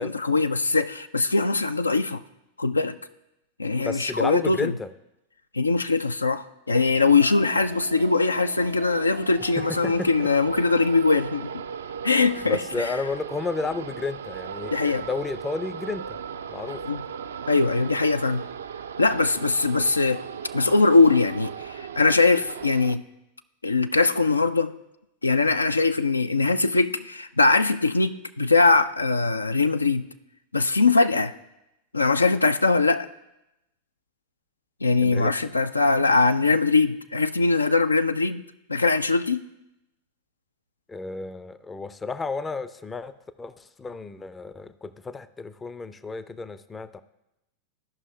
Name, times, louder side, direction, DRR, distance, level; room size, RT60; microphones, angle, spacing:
voice 1, 0.0-2.2 2.6-2.9 3.6-4.7 5.5-11.5 12.0-12.9 14.7-15.1 16.8-17.0 17.5-18.4 19.0-20.2 20.5-23.0 23.6-24.7 25.2-30.0 30.5-31.3 31.9-33.1 34.8-38.4 38.7-39.4, left 3 dB, 80° left, 11 dB, 0.3 m, -21 dB
voice 2, 3.8-4.9 9.6-10.3 12.4-16.2 16.5-17.0 35.0-35.3 40.9-47.0, left 4 dB, 15° left, 14 dB, 0.4 m, -32 dB
sound 1, 6.7-22.9, right 7 dB, 65° right, 0.3 m, -37 dB
14.5 x 5.5 x 3.2 m, 0.89 s
figure-of-eight pair, 90°, 0 cm